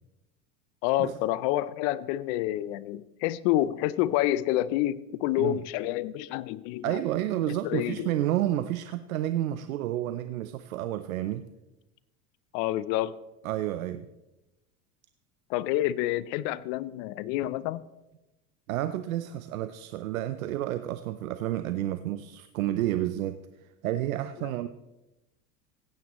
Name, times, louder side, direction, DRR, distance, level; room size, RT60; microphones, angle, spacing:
voice 1, 0.8-7.0 7.6-8.1 12.5-13.2 15.5-17.8, left 14 dB, 60° left, 18 dB, 0.6 m, -28 dB
voice 2, 6.8-11.5 13.4-14.1 18.7-23.4 23.8-24.7, right 13 dB, 90° right, 11 dB, 0.6 m, -30 dB
16.5 x 9.2 x 3.0 m, 0.98 s
hypercardioid pair, 95°, 40 cm